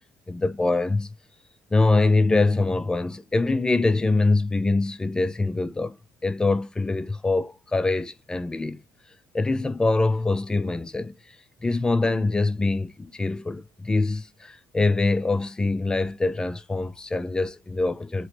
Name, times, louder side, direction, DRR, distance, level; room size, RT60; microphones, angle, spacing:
voice 1, 0.3-1.1 1.7-6.0 6.2-8.8 9.3-11.4 11.6-18.3, left 3 dB, 10° left, 0.4 m, -24 dB
3.0 x 2.9 x 2.9 m
cardioid pair, 130°, 7 cm